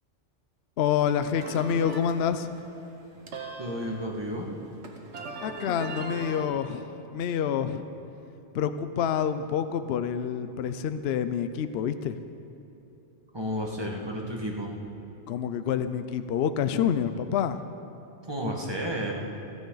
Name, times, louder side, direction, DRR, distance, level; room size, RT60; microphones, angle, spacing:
voice 1, 0.8-2.5 5.4-7.8 8.5-12.2 15.3-17.6, left 8 dB, 65° left, 10 dB, 0.8 m, -27 dB
sound 1, 1.3-6.5, right 3 dB, 75° right, 1.6 m, -40 dB
voice 2, 3.6-4.5 13.3-14.7 18.3-19.1, equal, 20° right, -1 dB, 1.7 m, -32 dB
27.5 x 9.5 x 4.0 m, 3.0 s
omnidirectional pair, 1.2 m